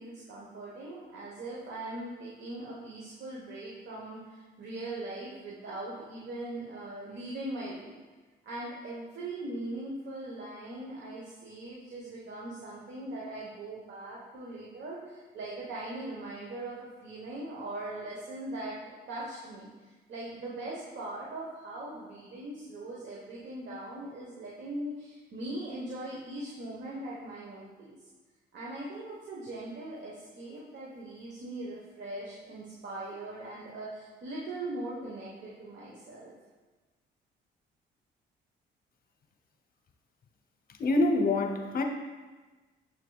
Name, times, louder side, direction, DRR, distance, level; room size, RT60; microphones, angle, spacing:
voice 1, 0.0-8.0 8.4-19.7 20.1-28.0 28.5-36.3, right 2 dB, 65° right, -5 dB, 1.1 m, -40 dB
voice 2, 40.8-41.8, left 2 dB, 50° left, 4 dB, 0.8 m, -25 dB
6.8 x 6.6 x 2.3 m, 1.3 s
cardioid pair, 90°, 20 cm